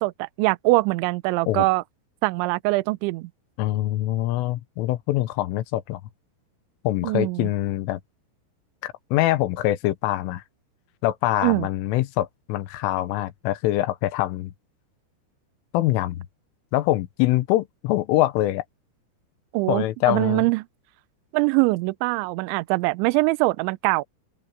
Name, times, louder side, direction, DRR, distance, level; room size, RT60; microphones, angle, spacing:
voice 1, 0.0-1.8 2.2-3.3 7.0-7.5 11.4-11.7 19.5-20.6 21.3-24.0, right 23 dB, 80° right, 2.8 m, -23 dB
voice 2, 3.6-6.0 6.8-8.0 8.8-10.4 11.0-14.5 15.7-16.3 16.7-18.6 19.7-20.5, left 15 dB, 85° left, 3.5 m, -24 dB
omnidirectional pair, 5.8 m